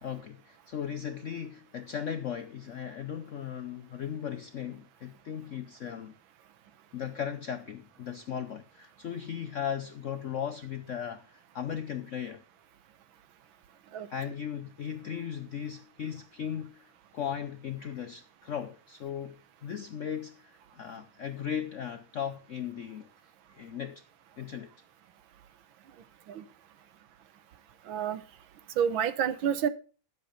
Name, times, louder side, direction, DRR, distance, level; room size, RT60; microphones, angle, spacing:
voice 1, 0.0-6.1 6.9-12.4 14.1-24.0 24.4-24.7, left 8 dB, 70° left, 0.7 m, -37 dB
voice 2, 27.9-28.2 28.8-29.7, right 8 dB, 80° right, 1.7 m, -28 dB
10.5 x 7.8 x 5.1 m
omnidirectional pair, 2.2 m